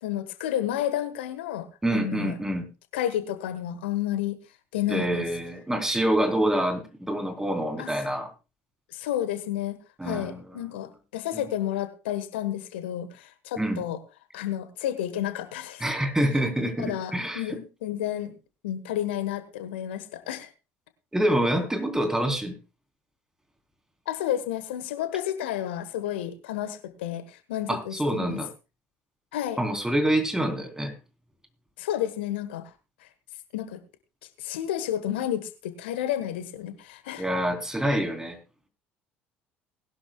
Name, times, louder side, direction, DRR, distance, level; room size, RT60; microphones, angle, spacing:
voice 1, 0.0-2.3 2.9-4.4 4.7-5.3 7.8-7.9 8.9-14.0 14.3-15.8 16.8-18.4 18.6-20.5 24.1-28.4 29.3-29.6 31.8-32.7 33.0-33.1 33.5-33.8 34.4-37.2, left 11 dB, 70° left, 12 dB, 1.3 m, -31 dB
voice 2, 1.8-2.7 4.9-8.3 10.0-10.4 11.3-11.4 13.6-13.8 15.8-17.4 21.1-22.5 27.7-28.5 29.6-30.9 37.2-38.4, right 1 dB, 10° right, 6 dB, 3.6 m, -26 dB
20.0 x 12.0 x 2.3 m, 0.30 s
figure-of-eight pair, 60°, 6 cm